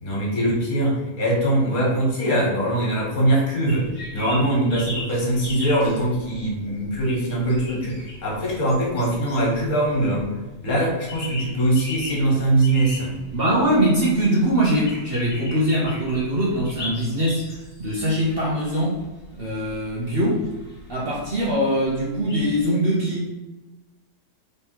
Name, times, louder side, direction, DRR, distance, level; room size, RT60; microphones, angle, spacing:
voice 1, 0.0-3.9 4.1-10.3 10.6-13.2, right 1 dB, 65° left, -3 dB, 1.8 m, -22 dB
sound 1, 3.7-22.6, left 2 dB, 35° left, 1.6 m, -39 dB
voice 2, 13.3-19.0 19.3-20.5 20.9-23.3, equal, 50° right, -4 dB, 0.8 m, -22 dB
3.4 x 3.2 x 4.5 m, 1.1 s
omnidirectional pair, 1.6 m